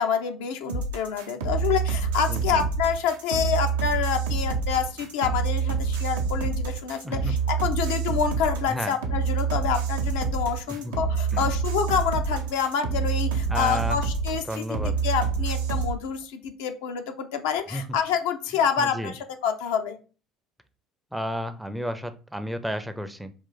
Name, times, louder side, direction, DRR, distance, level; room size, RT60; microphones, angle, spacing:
voice 1, 0.0-14.5 14.8-20.0, left 7 dB, 70° left, 6 dB, 0.5 m, -27 dB
sound 1, 0.7-15.9, right 5 dB, 75° right, 0.6 m, -27 dB
voice 2, 2.3-2.7 7.0-7.3 8.7-8.9 10.8-10.9 11.3-11.5 13.5-14.0 14.5-15.0 17.7-17.8 18.8-19.1 21.1-23.3, equal, 5° right, 10 dB, 0.5 m, -32 dB
3.8 x 2.4 x 3.9 m, 0.35 s
figure-of-eight pair, 60°, 0 cm